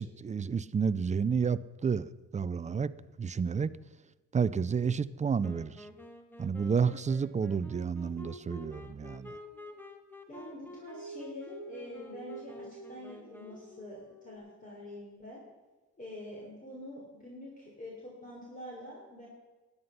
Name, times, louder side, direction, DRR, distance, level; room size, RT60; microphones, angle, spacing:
voice 1, 0.0-2.9 3.2-3.7 4.3-5.9 6.4-9.4, right 6 dB, 25° right, 17 dB, 0.5 m, -30 dB
Wind instrument woodwind instrument, 5.4-13.8, left 1 dB, 5° left, 1.4 m, -50 dB
sound 1, 8.0-9.7 10.6-14.4, right 3 dB, 45° left, 2.3 m, -50 dB
voice 2, 10.3-15.4 16.0-19.3, left 1 dB, 25° left, -3 dB, 3.5 m, -46 dB
13.0 x 9.7 x 5.7 m, 1.2 s
cardioid pair, 90°, 30 cm